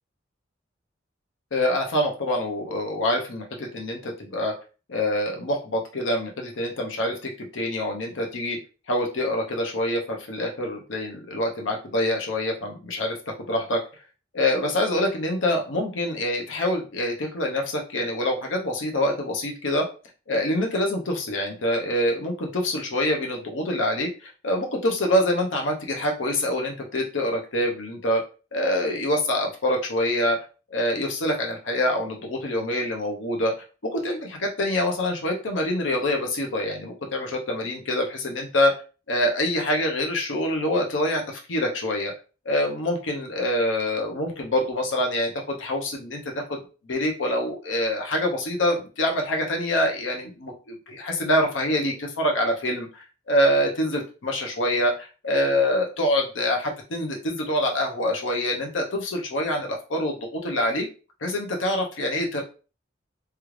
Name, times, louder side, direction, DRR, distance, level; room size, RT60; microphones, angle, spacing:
voice 1, 1.5-4.5 4.9-8.6 8.9-13.8 14.3-19.9 20.3-28.2 28.5-30.4 30.7-33.5 33.8-38.7 39.1-42.1 42.4-60.9 61.2-62.4, left 1 dB, 85° left, 1 dB, 0.8 m, -25 dB
3.3 x 2.4 x 3.1 m, 0.34 s
head